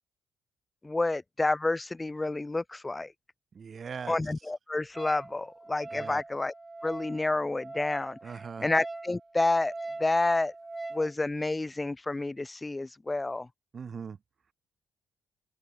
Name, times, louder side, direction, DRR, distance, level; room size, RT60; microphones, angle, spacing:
voice 1, 0.8-3.1 4.1-6.5 6.8-8.2 8.6-9.7 10.0-10.5 10.9-13.5, left 2 dB, 15° left, 1.2 m, -29 dB
voice 2, 3.5-4.2 5.9-6.2 8.2-8.7 13.7-14.2, right 6 dB, 45° right, 1.2 m, -40 dB
Wind instrument woodwind instrument, 5.0-11.1, right 2 dB, 20° right, 1.5 m, -42 dB
cardioid pair, 90°, 0 cm